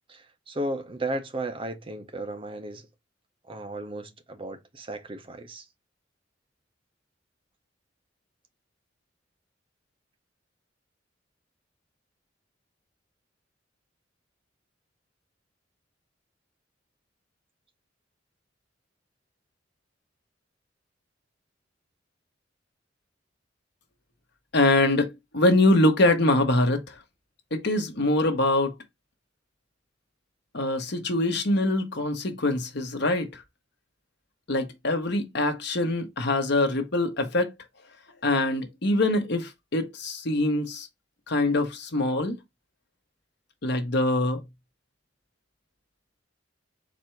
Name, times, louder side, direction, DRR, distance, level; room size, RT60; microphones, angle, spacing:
voice 1, 0.1-2.9 3.5-5.6, right 1 dB, 30° right, 0.7 m, -34 dB
voice 2, 24.5-27.0 27.5-28.7 30.5-33.4 34.5-37.5 38.2-40.9 41.3-42.4 43.6-44.4, left 2 dB, 65° left, 1.1 m, -24 dB
4.2 x 2.6 x 4.4 m
head